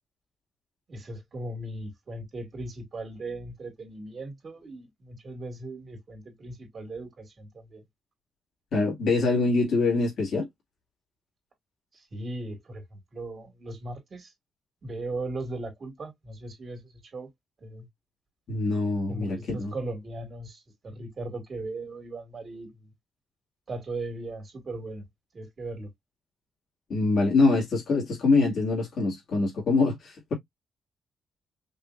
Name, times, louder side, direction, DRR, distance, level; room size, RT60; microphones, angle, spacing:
voice 1, 0.9-7.8 11.9-14.3 14.8-17.3 17.6-17.9 19.1-22.9 23.7-25.1 25.3-25.9, right 2 dB, 50° right, 2.2 m, -38 dB
voice 2, 8.7-10.5 18.5-19.7 26.9-30.3, left 3 dB, 70° left, 2.3 m, -24 dB
5.4 x 2.8 x 2.6 m
cardioid pair, 90°, 0 cm